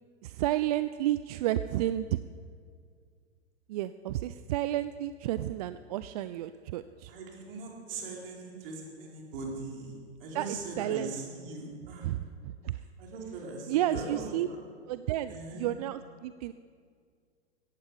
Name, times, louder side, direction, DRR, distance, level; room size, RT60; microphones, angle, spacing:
voice 1, 0.2-2.2 3.7-7.1 8.5-8.7 10.3-11.1 12.0-12.8 13.7-14.5 14.9-16.5, right 13 dB, 35° right, 13 dB, 0.4 m, -31 dB
voice 2, 7.1-12.1 13.0-14.6 15.3-15.7, right 3 dB, 55° right, -1 dB, 4.2 m, -40 dB
17.0 x 14.5 x 4.9 m, 2.1 s
figure-of-eight pair, 105°, 34 cm